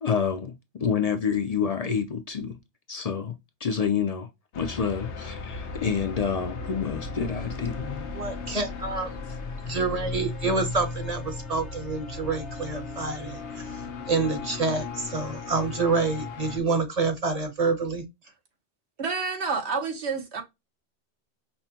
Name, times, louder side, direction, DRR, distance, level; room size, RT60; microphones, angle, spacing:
voice 1, 0.0-2.6 2.9-3.3 3.6-4.3 4.6-8.1, left 6 dB, 50° left, 0.4 m, -28 dB
sound 1, 4.5-16.6, left 4 dB, 90° left, 1.0 m, -36 dB
voice 2, 8.1-9.2 9.6-13.8 14.1-18.0, right 4 dB, 40° right, 0.8 m, -27 dB
voice 3, 19.0-20.4, right 4 dB, 75° right, 1.3 m, -29 dB
5.5 x 2.1 x 2.8 m
omnidirectional pair, 1.1 m